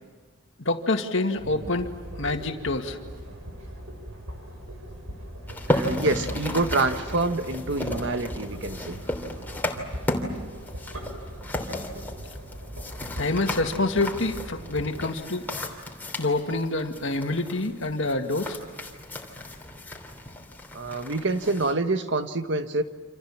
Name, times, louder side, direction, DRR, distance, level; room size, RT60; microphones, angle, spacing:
voice 1, 0.7-1.9 2.2-3.0 13.2-15.5 16.2-18.6, left 2 dB, 65° left, 5 dB, 2.1 m, -26 dB
sound 1, 1.3-15.0, equal, 85° right, 6.2 m, -40 dB
sound 2, 5.5-21.7, left 1 dB, 10° left, 3.0 m, -34 dB
voice 2, 5.7-9.0 20.7-22.8, right 2 dB, 60° right, 8 dB, 1.5 m, -26 dB
29.0 x 27.0 x 7.4 m, 1.5 s
head